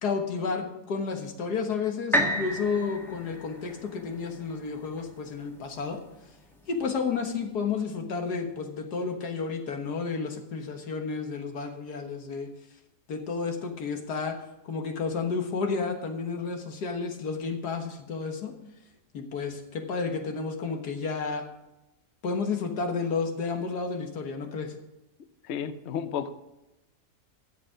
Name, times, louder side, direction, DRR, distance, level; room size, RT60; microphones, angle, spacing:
voice 1, 0.0-6.0 6.7-12.5 13.1-14.4 14.6-18.5 19.1-21.5 22.2-24.8, left 5 dB, 85° left, 4 dB, 2.0 m, -31 dB
sound 1, 2.1-6.1 6.6-6.7, equal, ahead, 1.6 m, -32 dB
voice 2, 25.4-26.3, left 8 dB, 55° left, 11 dB, 0.9 m, -32 dB
13.0 x 7.9 x 5.0 m, 0.95 s
omnidirectional pair, 1.7 m